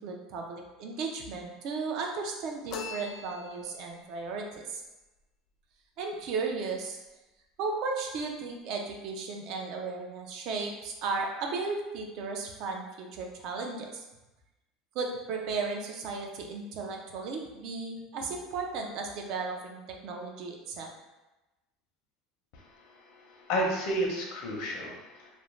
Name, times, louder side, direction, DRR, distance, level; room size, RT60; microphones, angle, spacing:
voice 1, 0.0-4.8 6.0-7.0 7.6-14.0 14.9-20.9, right 4 dB, 55° right, 1 dB, 0.4 m, -35 dB
sound 1, 2.7-4.0, left 6 dB, 45° left, 0.3 m, -41 dB
voice 2, 22.5-25.3, equal, 65° left, -1 dB, 0.7 m, -32 dB
2.5 x 2.0 x 3.1 m, 1.0 s
supercardioid pair, 135°, 0 cm